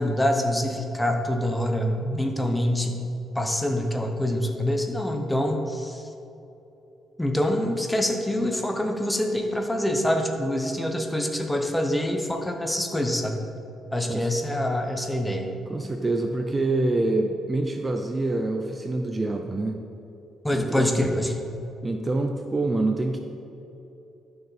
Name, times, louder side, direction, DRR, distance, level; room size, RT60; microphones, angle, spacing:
voice 1, 0.0-3.0 3.3-6.1 7.2-13.4 13.9-15.5 20.4-21.4, left 1 dB, 10° left, 4 dB, 1.1 m, -25 dB
voice 2, 15.7-19.8 20.5-21.0 21.8-23.2, right 2 dB, 25° right, 5 dB, 0.6 m, -26 dB
11.5 x 6.8 x 4.3 m, 2.9 s
cardioid pair, 90°, 0 cm